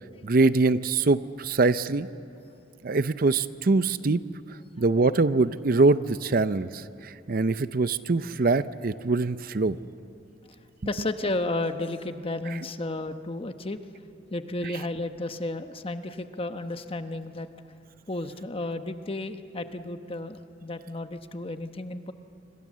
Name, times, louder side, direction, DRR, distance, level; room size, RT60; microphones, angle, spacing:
voice 1, 0.2-2.1 2.8-4.2 4.8-9.8 12.5-12.6 14.6-14.7, right 3 dB, 50° right, 14 dB, 0.6 m, -23 dB
voice 2, 10.9-13.8 14.3-17.5 18.1-22.1, left 2 dB, 30° left, 8 dB, 1.0 m, -32 dB
26.5 x 25.0 x 7.5 m, 2.5 s
head